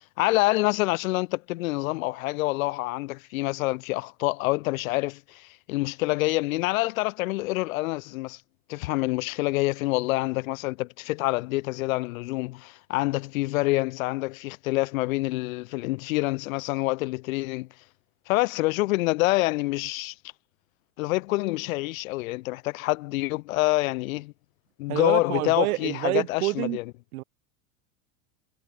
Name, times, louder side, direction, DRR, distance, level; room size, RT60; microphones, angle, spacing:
voice 1, 0.2-8.4 8.7-17.7 18.3-20.1 21.0-24.3 24.8-26.9, left 20 dB, 70° left, 0.6 m, -27 dB
voice 2, 24.9-26.8 27.1-27.2, right 19 dB, 80° right, 0.8 m, -27 dB
supercardioid pair, 175°, 43 cm